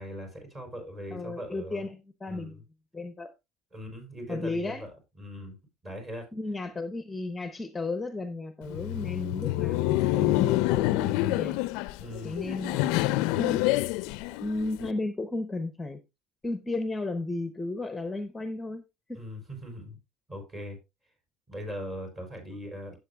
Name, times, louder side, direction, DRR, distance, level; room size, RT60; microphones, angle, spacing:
voice 1, 0.0-1.8 2.3-2.6 3.7-4.9 5.2-5.6 5.8-6.3 12.0-12.5 19.1-20.0 20.3-20.8 21.5-23.0, equal, 25° right, 4.7 m, -40 dB
voice 2, 1.1-2.6 2.9-3.3 4.3-4.9 6.3-11.6 12.2-13.0 13.3-13.6 14.4-16.0 16.4-18.8 19.1-19.2, left 2 dB, 15° left, 0.7 m, -34 dB
Laughter, 8.6-14.9, left 17 dB, 80° left, 0.4 m, -27 dB
12.0 x 7.4 x 2.3 m
cardioid pair, 125°, 0 cm